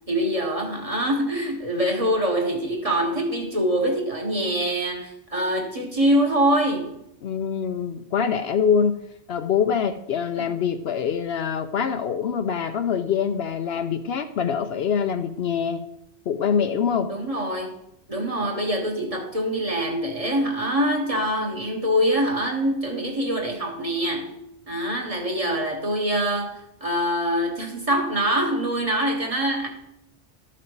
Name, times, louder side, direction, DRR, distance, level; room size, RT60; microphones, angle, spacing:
voice 1, 0.1-7.0 10.4-10.5 17.1-17.7 18.1-24.3 24.7-29.7, right 1 dB, 30° right, 1 dB, 1.5 m, -24 dB
voice 2, 7.2-15.8 16.3-17.1, left 7 dB, 65° left, 8 dB, 0.8 m, -24 dB
13.0 x 5.9 x 4.6 m, 0.81 s
omnidirectional pair, 1.2 m